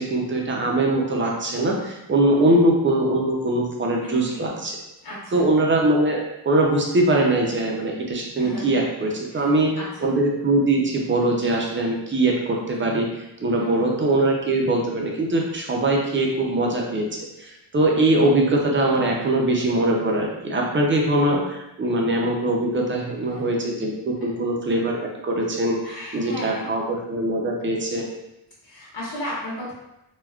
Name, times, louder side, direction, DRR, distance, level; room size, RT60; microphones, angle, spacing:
voice 1, 0.0-4.8 5.3-6.2 6.5-9.7 10.0-13.1 13.4-17.1 17.4-28.0, right 1 dB, 30° right, -1 dB, 0.5 m, -22 dB
voice 2, 4.0-4.6 5.0-5.5 8.3-8.7 9.3-10.1 13.5-14.0 23.3-23.5 25.8-26.6 28.6-29.7, left 1 dB, 70° left, -7 dB, 1.1 m, -35 dB
3.4 x 2.2 x 2.3 m, 0.91 s
wide cardioid pair, 140°, 40 cm